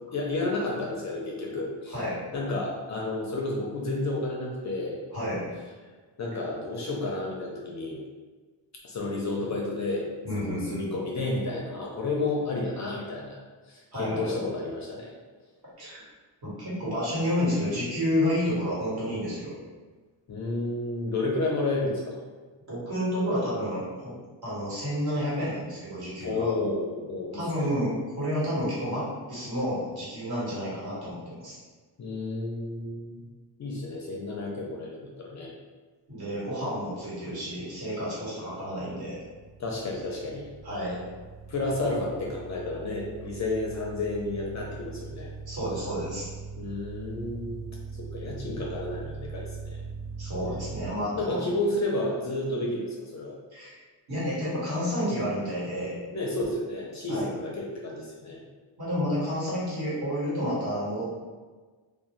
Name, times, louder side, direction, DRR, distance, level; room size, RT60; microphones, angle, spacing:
voice 1, 0.1-2.0 2.3-5.0 6.2-8.0 8.8-10.1 10.3-13.4 13.7-15.1 20.3-22.2 26.2-27.7 32.0-33.2 33.6-35.5 39.6-40.5 41.5-45.3 46.6-47.6 48.0-49.8 51.1-53.3 56.1-58.4, left 2 dB, 40° left, -2 dB, 0.4 m, -31 dB
voice 2, 1.9-2.2 5.1-5.4 10.2-10.9 13.9-14.4 15.8-16.0 16.4-19.5 22.7-24.1 24.4-26.5 27.3-31.6 36.1-39.2 40.6-41.0 45.5-46.3 50.2-51.5 53.5-53.8 54.1-56.0 57.1-57.3 58.8-61.1, equal, 50° right, -9 dB, 1.5 m, -30 dB
sound 1, 38.8-50.9, right 4 dB, ahead, 0.9 m, -41 dB
2.5 x 2.0 x 3.0 m, 1.4 s
cardioid pair, 110°, 47 cm